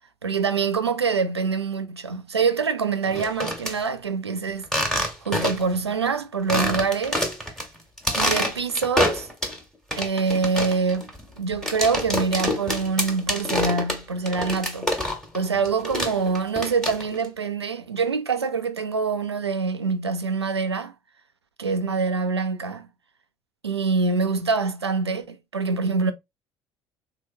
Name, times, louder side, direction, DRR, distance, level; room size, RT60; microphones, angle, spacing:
voice 1, 0.2-4.7 5.3-7.2 8.2-9.3 10.0-14.9 15.3-20.9 21.6-22.9 23.6-26.1, right 5 dB, 90° right, 0.4 m, -25 dB
sound 1, 3.0-3.7 4.6-5.7 6.1-6.2 6.5-7.6 8.0-9.6 9.9-15.4 15.6-17.2, equal, 5° left, 1.3 m, -26 dB
3.4 x 2.8 x 2.6 m
figure-of-eight pair, 55°, 13 cm